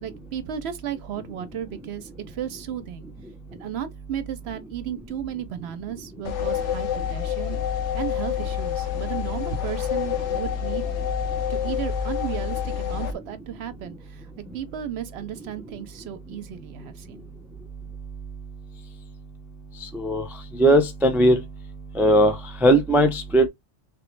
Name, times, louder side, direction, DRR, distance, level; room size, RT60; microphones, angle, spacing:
voice 1, 0.0-3.1 3.5-7.6 7.9-10.8 11.5-14.3 14.5-17.2, right 9 dB, 70° right, 0.8 m, -34 dB
sound 1, 6.2-13.1, left 8 dB, 80° left, 1.0 m, -27 dB
voice 2, 19.8-20.2 20.6-21.4 22.0-23.5, right 1 dB, 5° right, 0.3 m, -18 dB
3.3 x 3.0 x 3.1 m
omnidirectional pair, 1.2 m